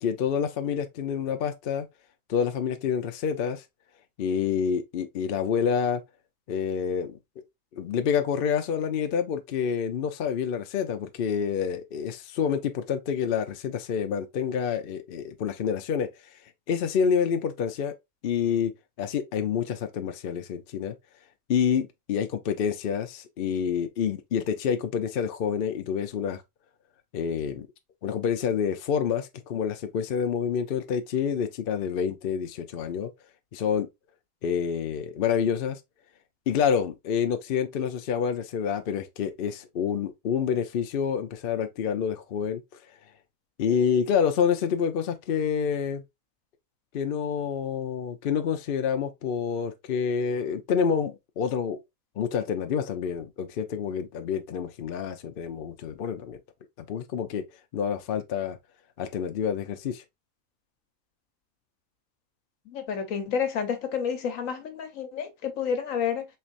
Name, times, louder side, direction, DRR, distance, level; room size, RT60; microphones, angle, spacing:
voice 1, 0.0-1.9 2.3-3.6 4.2-6.0 6.5-7.2 7.7-16.1 16.7-17.9 18.2-18.7 19.0-20.9 21.5-26.4 27.1-27.7 28.0-33.1 33.5-33.9 34.4-35.8 36.5-42.6 43.6-46.0 46.9-51.8 52.2-56.4 56.9-57.4 57.7-58.6 59.0-60.0, left 7 dB, 60° left, 0.6 m, -28 dB
voice 2, 62.7-66.3, left 7 dB, 75° left, 1.3 m, -30 dB
4.4 x 3.3 x 2.5 m
omnidirectional pair, 1.4 m